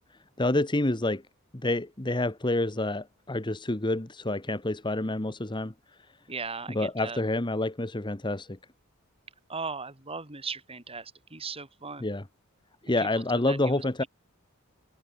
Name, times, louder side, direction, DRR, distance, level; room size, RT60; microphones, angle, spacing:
voice 1, 0.4-1.2 1.6-5.7 6.7-8.6 12.0-12.2 12.8-14.0, left 2 dB, 20° left, 1.2 m, -28 dB
voice 2, 6.3-7.2 9.5-12.1 13.0-14.1, right 4 dB, 25° right, 6.9 m, -38 dB
head